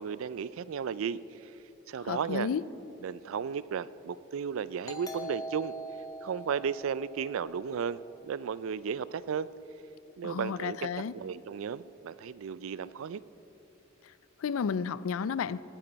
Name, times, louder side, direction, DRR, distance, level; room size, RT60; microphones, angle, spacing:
voice 1, 0.0-1.5 1.9-2.5 3.0-5.7 6.2-9.5 10.2-10.9 11.1-13.2, right 7 dB, 80° right, 18 dB, 0.4 m, -34 dB
voice 2, 2.1-2.6 10.2-11.1 14.4-15.6, left 6 dB, 90° left, 18 dB, 0.4 m, -32 dB
Doorbell, 4.8-8.2, right 1 dB, 20° left, 1.1 m, -43 dB
18.5 x 9.0 x 4.6 m, 2.9 s
head